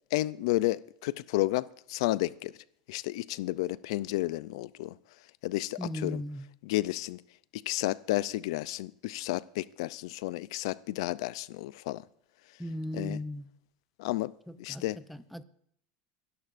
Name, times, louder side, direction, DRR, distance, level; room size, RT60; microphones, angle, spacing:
voice 1, 0.1-2.6 2.9-5.0 5.4-6.2 6.6-7.2 7.5-12.0 12.9-13.2 14.0-15.0, left 17 dB, 75° left, 0.4 m, -32 dB
voice 2, 5.8-6.5 12.6-13.4 14.5-14.8 15.1-15.4, left 1 dB, ahead, 0.6 m, -36 dB
29.5 x 11.0 x 2.6 m
supercardioid pair, 140°, 3 cm